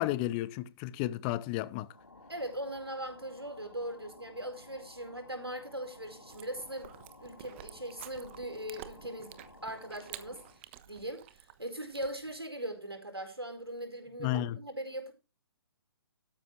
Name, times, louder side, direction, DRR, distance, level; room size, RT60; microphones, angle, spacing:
voice 1, 0.0-1.9 14.2-14.6, left 15 dB, 20° left, 0.6 m, -32 dB
sound 1, 1.8-10.6, left 2 dB, 80° left, 2.1 m, -55 dB
voice 2, 2.3-6.9 7.2-15.1, right 1 dB, 85° right, 4.6 m, -40 dB
Chewing mastication, 6.3-12.4, right 12 dB, 30° right, 1.2 m, -51 dB
13.0 x 11.0 x 3.2 m
figure-of-eight pair, 130°, 13 cm